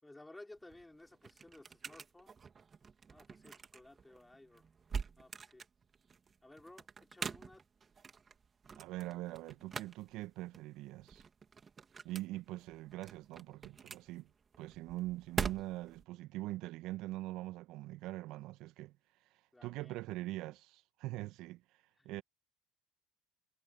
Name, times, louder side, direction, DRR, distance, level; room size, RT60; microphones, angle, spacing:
voice 1, 0.0-2.4 3.1-4.7 5.2-5.6 6.4-7.6 19.5-20.0 22.0-22.2, left 2 dB, 10° left, 5.8 m, -57 dB
sound 1, 0.5-16.0, right 5 dB, 30° right, 3.3 m, -45 dB
voice 2, 8.8-11.2 12.0-14.3 14.6-19.0 19.6-21.6 22.0-22.2, right 17 dB, 65° right, 1.7 m, -43 dB
hypercardioid pair, 65°, 0 cm